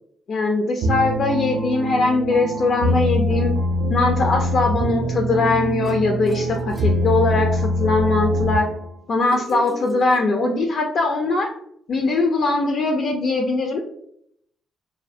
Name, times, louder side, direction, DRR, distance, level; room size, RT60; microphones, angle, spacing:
voice 1, 0.3-3.5 3.9-8.7 9.1-11.5 11.9-13.8, left 3 dB, 55° left, 2 dB, 0.3 m, -21 dB
sound 1, 0.8-8.9, equal, 75° right, 0.4 m, -23 dB
sound 2, 5.8-7.8 9.3-10.8, right 5 dB, 20° right, 0.5 m, -38 dB
2.3 x 2.0 x 2.6 m, 0.70 s
cardioid pair, 90°, 0 cm